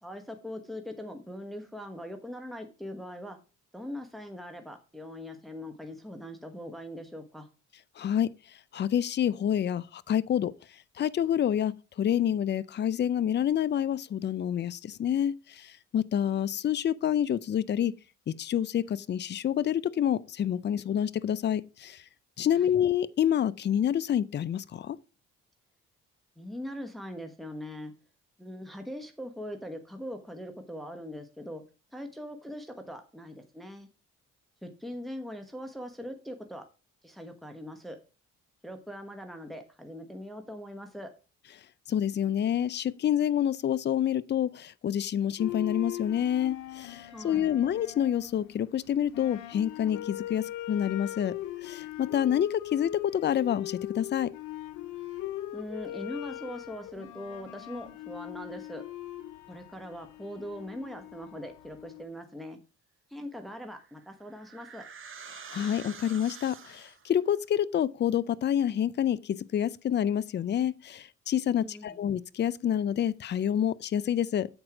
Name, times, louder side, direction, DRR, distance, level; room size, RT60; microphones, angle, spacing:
voice 1, 0.0-3.4 3.7-7.5 22.6-22.7 26.4-27.9 28.4-31.6 31.9-33.9 34.6-36.6 37.0-38.0 38.6-41.1 47.1-47.6 55.5-58.8 59.5-62.6 63.1-64.8 71.6-72.0, equal, ahead, 1.1 m, -41 dB
voice 2, 8.0-8.3 8.7-10.5 11.0-17.9 18.3-22.0 22.4-25.0 41.9-51.4 51.6-54.3 65.5-74.5, left 10 dB, 35° left, 0.5 m, -28 dB
sound 1, 45.4-62.0, left 14 dB, 85° left, 0.7 m, -40 dB
sound 2, 63.7-67.1, right 6 dB, 45° right, 1.2 m, -47 dB
7.9 x 4.4 x 4.9 m
cardioid pair, 90°, 30 cm